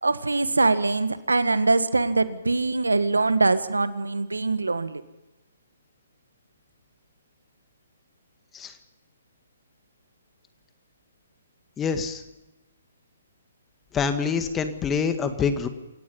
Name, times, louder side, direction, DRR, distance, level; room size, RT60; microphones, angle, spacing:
voice 1, 0.0-5.0, right 3 dB, 85° right, 12 dB, 1.6 m, -23 dB
voice 2, 11.8-12.2 13.9-15.7, left 6 dB, 15° left, 8 dB, 1.9 m, -26 dB
28.5 x 16.5 x 5.5 m, 1.1 s
figure-of-eight pair, 130°, 0 cm